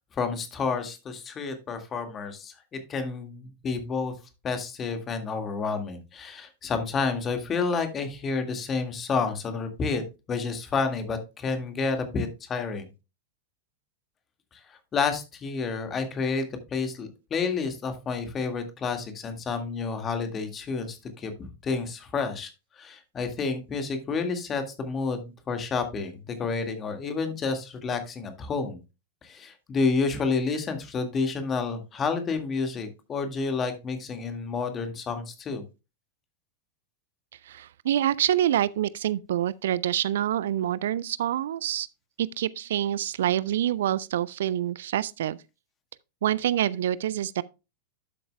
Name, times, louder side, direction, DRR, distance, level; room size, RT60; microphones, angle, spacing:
voice 1, 0.2-4.1 4.4-10.0 10.3-12.9 14.5-22.5 22.8-28.8 29.2-35.6, left 4 dB, 25° left, 1.9 m, -30 dB
voice 2, 37.4-41.9 42.2-45.4 46.2-47.4, right 11 dB, 60° right, 0.3 m, -26 dB
12.0 x 7.7 x 2.2 m
figure-of-eight pair, 90°, 0 cm